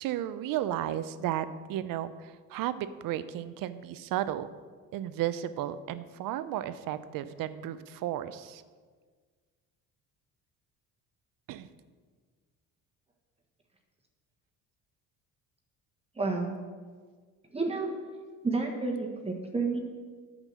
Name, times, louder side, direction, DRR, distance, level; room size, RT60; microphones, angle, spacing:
voice 1, 0.0-4.5 4.9-8.6 11.5-11.7, right 12 dB, 70° right, 13 dB, 0.7 m, -33 dB
voice 2, 16.2-16.6 17.5-18.0 18.4-19.8, right 3 dB, 15° right, 0 dB, 1.3 m, -30 dB
9.0 x 7.5 x 6.2 m, 1.5 s
cardioid pair, 115°, 35 cm